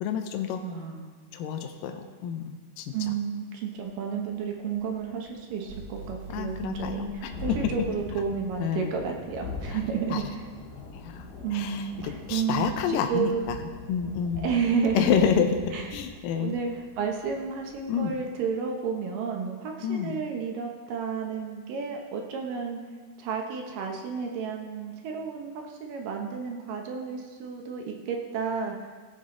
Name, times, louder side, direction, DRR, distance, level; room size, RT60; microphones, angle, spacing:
voice 1, 0.0-0.6 1.3-2.5 2.8-2.9 6.3-7.3 8.6-8.9 10.1-10.2 10.9-11.2 11.5-13.6 13.9-14.5 14.9-15.5 15.9-16.5 17.9-18.2 19.8-20.1, left 8 dB, 80° left, 5 dB, 2.0 m, -28 dB
voice 2, 0.6-1.1 2.9-10.5 11.4-13.4 14.4-15.2 15.7-15.9 16.4-22.8 23.2-28.9, right 6 dB, 70° right, 2 dB, 2.2 m, -31 dB
Thunderstorm, 4.3-4.4 4.7-18.3, left 3 dB, 60° left, 2.7 m, -43 dB
sound 1, 5.7-7.0, right 3 dB, 90° right, 1.7 m, -42 dB
17.5 x 7.6 x 3.8 m, 1.5 s
omnidirectional pair, 4.8 m